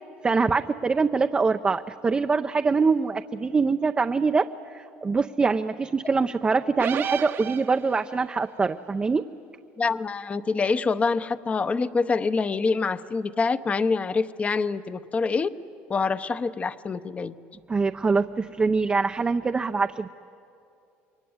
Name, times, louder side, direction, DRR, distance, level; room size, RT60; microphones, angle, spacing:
voice 1, 0.2-9.3 17.7-20.1, right 4 dB, 20° right, 6 dB, 0.6 m, -24 dB
sound 1, 6.8-8.2, right 8 dB, 50° right, 1.0 m, -31 dB
voice 2, 9.8-15.5 15.9-17.3, left 4 dB, 25° left, 12 dB, 0.9 m, -26 dB
27.0 x 23.0 x 9.6 m, 2.6 s
cardioid pair, 110°, 5 cm